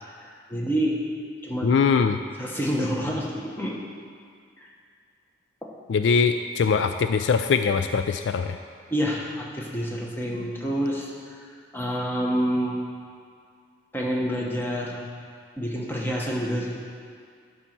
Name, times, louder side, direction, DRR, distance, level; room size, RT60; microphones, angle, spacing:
voice 1, 0.2-1.0 1.4-1.8 2.4-3.8 4.6-4.7 8.9-11.5 11.7-12.8 13.9-15.0 15.6-16.8, equal, 10° left, -2 dB, 1.0 m, -28 dB
voice 2, 1.6-2.2 5.9-8.6, left 5 dB, 65° left, 8 dB, 0.3 m, -22 dB
11.5 x 4.1 x 6.0 m, 2.2 s
head